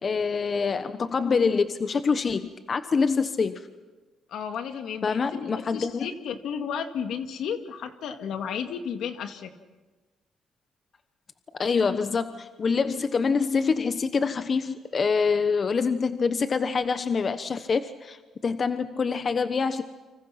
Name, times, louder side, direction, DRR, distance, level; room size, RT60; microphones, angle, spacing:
voice 1, 0.0-3.6 5.0-6.1 11.6-19.8, left 5 dB, 40° left, 10 dB, 1.1 m, -25 dB
voice 2, 4.3-9.5, left 7 dB, 75° left, 7 dB, 2.1 m, -33 dB
29.5 x 26.0 x 5.9 m, 1.2 s
cardioid pair, 90°, 0 cm